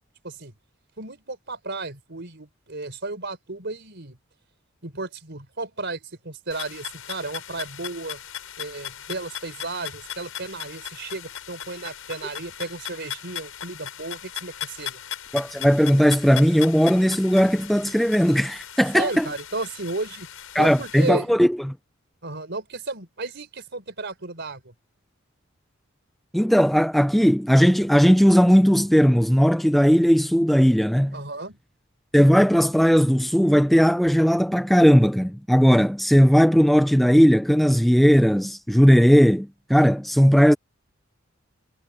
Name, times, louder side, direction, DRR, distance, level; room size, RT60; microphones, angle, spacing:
voice 1, 1.0-4.2 4.8-8.2 8.6-15.0 18.9-20.3 20.6-21.3 22.2-24.7 31.1-31.6, right 3 dB, 55° right, 4.4 m, -33 dB
sound 1, 6.5-21.1, left 10 dB, 85° left, 5.9 m, -38 dB
voice 2, 15.3-19.3 20.5-21.7 26.3-31.2 32.1-40.6, equal, ahead, 0.4 m, -17 dB
head